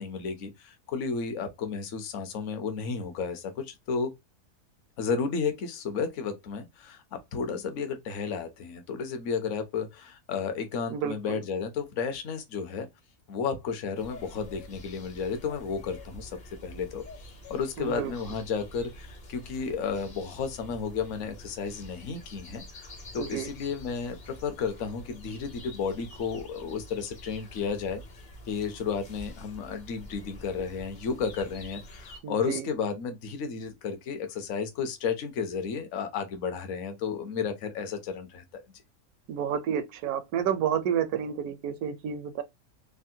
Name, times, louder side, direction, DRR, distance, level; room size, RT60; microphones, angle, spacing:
voice 1, 0.0-4.1 5.0-12.9 13.3-16.3 16.6-28.0 28.5-38.6, left 5 dB, 60° left, 1.0 m, -33 dB
voice 2, 10.9-11.4 17.8-18.1 23.2-23.5 32.2-32.7 39.3-42.4, right 8 dB, 85° right, 1.1 m, -30 dB
sound 1, 13.9-32.2, left 1 dB, 40° left, 0.7 m, -47 dB
3.4 x 2.1 x 2.6 m
omnidirectional pair, 1.6 m